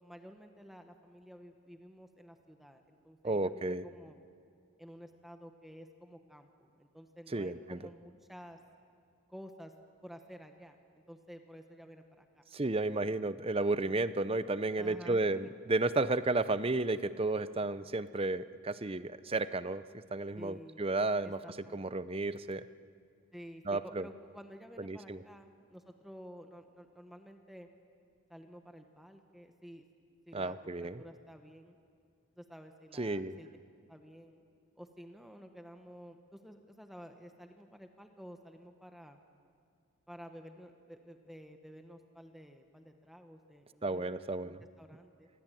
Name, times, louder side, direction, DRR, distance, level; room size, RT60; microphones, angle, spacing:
voice 1, 0.0-4.2 4.8-8.6 9.3-9.7 10.0-12.4 13.0-13.1 14.7-15.5 20.3-20.9 21.2-22.2 23.3-27.7 28.3-29.9 30.3-31.8 32.4-33.5 33.9-34.4 34.8-39.2 40.1-44.0 44.4-45.3, equal, ahead, 5 dB, 1.3 m, -52 dB
voice 2, 3.2-3.8 7.3-7.8 12.5-19.8 20.1-21.4 21.7-22.6 23.7-24.1 24.8-25.2 30.3-31.0 33.0-33.4 43.8-44.6, right 2 dB, 25° right, 14 dB, 0.7 m, -32 dB
28.0 x 21.5 x 9.1 m, 2.3 s
head